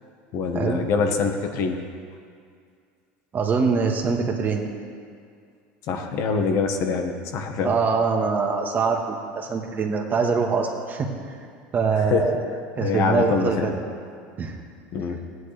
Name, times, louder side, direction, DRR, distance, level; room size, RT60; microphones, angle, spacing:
voice 1, 0.3-1.8 5.9-7.8 12.0-12.2 12.8-13.7 14.9-15.2, left 5 dB, 55° left, 4 dB, 1.3 m, -24 dB
voice 2, 3.3-4.7 7.6-11.1 11.7-12.4 12.8-13.7 14.4-14.5, right 5 dB, 35° right, 2 dB, 1.5 m, -23 dB
15.5 x 9.6 x 3.4 m, 2.2 s
supercardioid pair, 100°, 6 cm